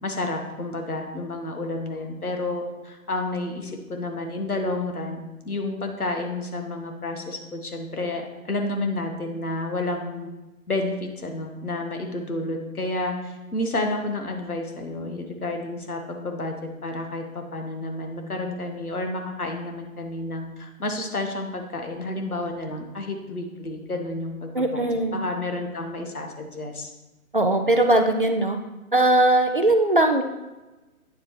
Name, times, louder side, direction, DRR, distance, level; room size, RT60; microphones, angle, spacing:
voice 1, 0.0-10.3 10.7-16.5 16.8-24.9 25.1-26.9, left 2 dB, 80° left, 4 dB, 1.5 m, -30 dB
voice 2, 24.5-25.2 27.3-28.6 28.9-30.2, right 2 dB, 40° right, 5 dB, 0.4 m, -20 dB
9.0 x 7.3 x 3.1 m, 1.1 s
figure-of-eight pair, 140°, 44 cm